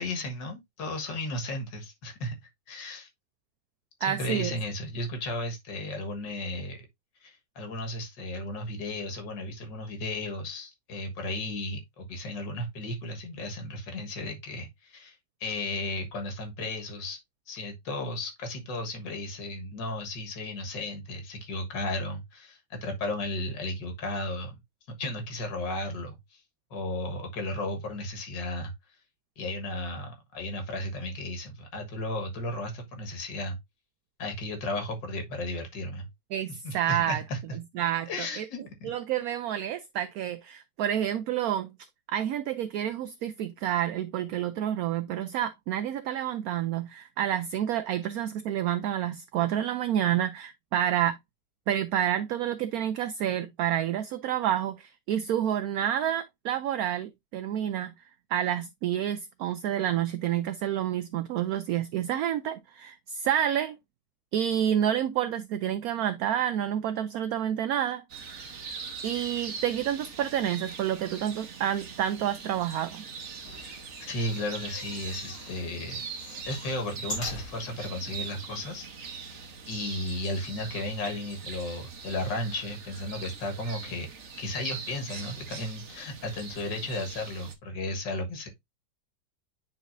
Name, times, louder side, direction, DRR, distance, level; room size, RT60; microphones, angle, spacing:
voice 1, 0.0-2.4 2.7-3.1 4.0-6.8 7.2-15.2 15.4-17.2 17.5-24.6 25.0-26.4 26.7-28.7 29.4-33.6 34.2-36.1 36.6-37.4 38.1-38.9 74.1-76.0 76.5-78.9 79.7-84.1 84.4-88.5, left 1 dB, 85° left, 2.2 m, -34 dB
voice 2, 4.0-4.5 36.3-37.2 37.7-38.5 38.8-41.8 42.1-51.2 51.7-57.9 58.3-63.8 64.3-68.0 69.0-73.0, right 10 dB, 70° right, 0.9 m, -29 dB
sound 1, 68.1-87.5, right 5 dB, 45° right, 1.2 m, -42 dB
sound 2, 73.4-75.6 76.0-77.9 78.5-78.6 78.8-78.9, left 1 dB, 35° left, 3.4 m, -42 dB
9.6 x 4.0 x 2.6 m
omnidirectional pair, 1.9 m